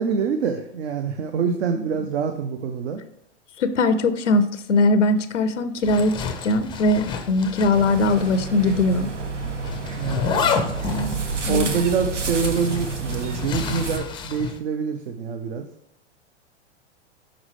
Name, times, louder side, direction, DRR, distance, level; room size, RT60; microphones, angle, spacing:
voice 1, 0.0-3.0 10.0-10.4 11.5-15.6, right 6 dB, 60° right, 0.7 m, -25 dB
voice 2, 3.6-9.1 11.5-11.7, left 2 dB, 85° left, 0.6 m, -20 dB
Zipper (clothing), 5.8-8.4 8.7-8.8 9.6-14.6, left 5 dB, 15° left, 0.4 m, -29 dB
sound 1, 7.7-14.0, right 4 dB, 85° right, 0.9 m, -29 dB
6.0 x 5.1 x 3.2 m
hypercardioid pair, 105°, 35 cm